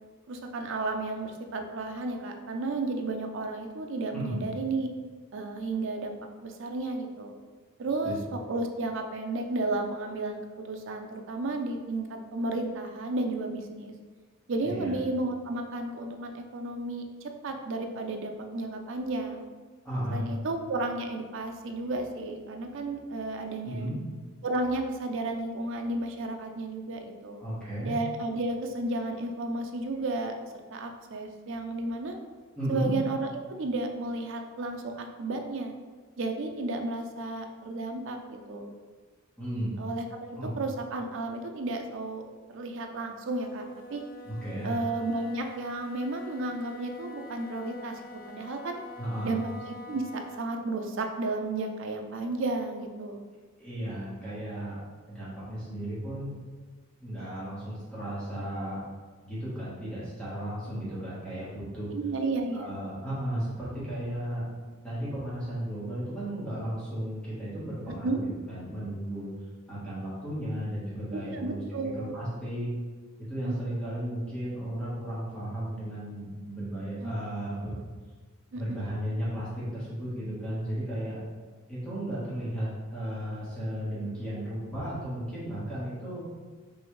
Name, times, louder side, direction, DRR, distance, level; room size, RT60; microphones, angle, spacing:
voice 1, 0.3-4.9 5.3-7.4 7.8-13.9 14.5-19.4 20.1-23.9 24.4-27.4 27.8-30.3 30.7-32.2 32.7-33.3 33.6-35.7 36.2-38.7 39.8-42.2 42.5-44.0 44.6-48.0 48.3-48.8 49.2-53.2 61.9-62.7 67.9-68.2 71.1-72.1 73.4-73.6 77.0-77.1 78.5-78.8, right 2 dB, 60° right, 4 dB, 0.5 m, -33 dB
voice 2, 4.1-4.4 8.0-8.2 14.6-14.9 19.8-20.2 23.6-24.0 27.4-27.9 32.5-32.9 39.4-39.8 40.3-40.5 44.2-44.8 49.0-49.3 53.6-54.8 55.1-56.4 57.0-58.8 59.2-61.9 62.5-64.4 64.8-69.3 69.7-71.6 71.9-72.7 73.2-77.7 78.5-81.2 81.7-86.2, equal, 5° left, -10 dB, 1.3 m, -34 dB
Wind instrument woodwind instrument, 43.3-50.5, left 1 dB, 40° left, 0.4 m, -46 dB
5.4 x 2.6 x 3.1 m, 1.4 s
head